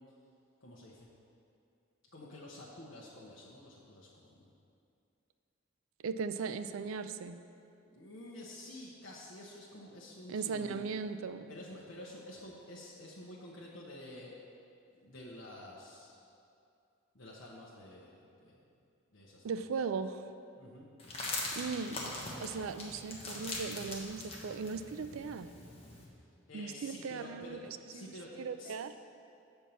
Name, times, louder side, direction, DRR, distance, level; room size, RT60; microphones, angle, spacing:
voice 1, 0.6-1.1 2.1-4.5 7.8-10.8 11.5-14.3 15.0-16.2 17.1-18.7 19.1-19.5 20.5-20.9 26.5-27.6 27.9-28.7, left 1 dB, 65° left, -5 dB, 0.9 m, -50 dB
voice 2, 6.0-7.4 10.3-11.5 19.4-20.2 21.5-22.0 22.4-25.5 26.5-28.0 28.4-28.9, right 5 dB, 85° right, 11 dB, 0.4 m, -38 dB
sound 1, 21.0-26.1, left 2 dB, 30° left, 1.1 m, -42 dB
7.2 x 4.5 x 6.8 m, 2.5 s
head